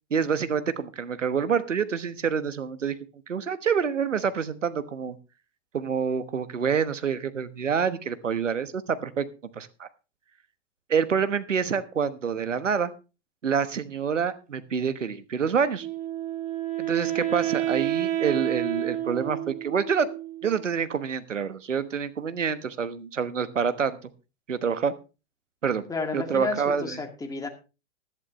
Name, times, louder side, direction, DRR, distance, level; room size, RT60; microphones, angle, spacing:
voice 1, 0.1-3.0 3.3-5.2 5.7-9.3 9.5-9.9 10.9-12.9 13.4-15.9 16.8-20.1 20.4-24.1 24.5-24.9 25.6-27.0, right 6 dB, 85° right, 13 dB, 1.2 m, -27 dB
Wind instrument woodwind instrument, 15.8-20.9, right 13 dB, 20° right, 2.0 m, -30 dB
voice 2, 25.9-27.5, left 3 dB, 10° left, 4 dB, 2.1 m, -31 dB
15.5 x 11.0 x 3.1 m, 0.31 s
hypercardioid pair, 115°, 36 cm